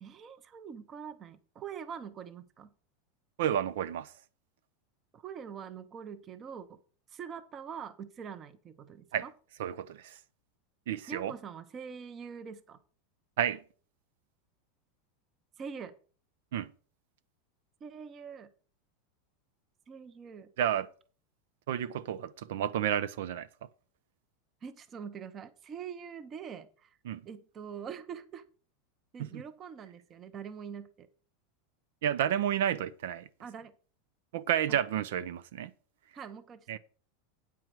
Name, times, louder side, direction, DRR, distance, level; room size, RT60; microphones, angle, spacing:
voice 1, 0.0-2.7 5.1-6.8 7.1-9.3 11.1-12.8 15.6-16.0 17.8-18.5 19.9-20.5 24.6-27.0 27.2-28.4 29.1-31.1 33.4-33.7 34.7-34.8 36.1-36.8, right 7 dB, 20° right, 0.8 m, -44 dB
voice 2, 3.4-4.1 9.1-9.3 9.6-10.2 10.9-11.3 13.4-13.6 16.5-16.7 20.6-20.9 21.7-23.5 27.0-27.2 29.2-29.4 32.0-33.3 34.3-35.7 36.7-36.8, right 10 dB, 75° right, 0.6 m, -31 dB
9.1 x 4.7 x 7.4 m
supercardioid pair, 170°, 0 cm